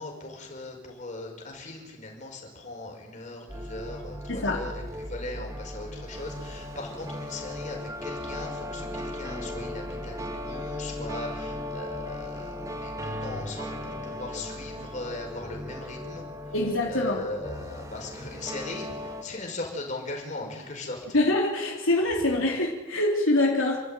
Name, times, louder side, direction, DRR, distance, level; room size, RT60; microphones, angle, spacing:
voice 1, 0.0-4.8 5.1-16.3 16.9-21.0, left 2 dB, 35° left, 1 dB, 5.9 m, -39 dB
sound 1, 3.5-19.2, left 1 dB, 15° right, 1.8 m, -37 dB
voice 2, 4.3-4.6 16.5-17.2 21.1-23.8, left 2 dB, 75° left, -1 dB, 3.6 m, -24 dB
30.0 x 13.0 x 9.2 m, 1.1 s
head